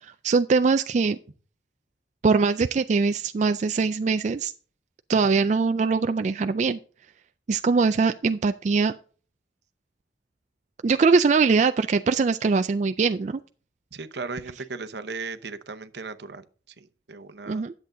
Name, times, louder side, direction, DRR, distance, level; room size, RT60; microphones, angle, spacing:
voice 1, 0.0-1.2 2.2-4.5 5.1-6.8 7.5-8.9 10.8-13.4 17.5-17.7, right 4 dB, 40° right, 0.3 m, -22 dB
voice 2, 13.9-17.6, right 4 dB, 70° right, 0.8 m, -37 dB
10.5 x 7.7 x 3.8 m
head